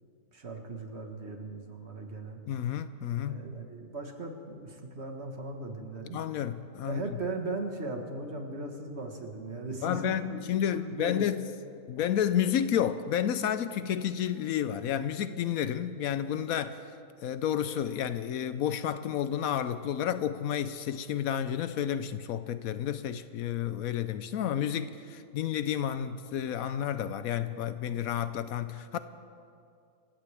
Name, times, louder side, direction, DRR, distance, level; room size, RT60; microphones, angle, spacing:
voice 1, 0.3-2.4 3.3-6.2 6.8-11.3, right 2 dB, 45° right, 1.6 m, -38 dB
voice 2, 2.5-3.5 6.1-7.0 9.8-11.5 11.9-16.8 17.2-29.0, left 9 dB, 75° left, 1.0 m, -31 dB
27.5 x 15.5 x 3.4 m
omnidirectional pair, 1.6 m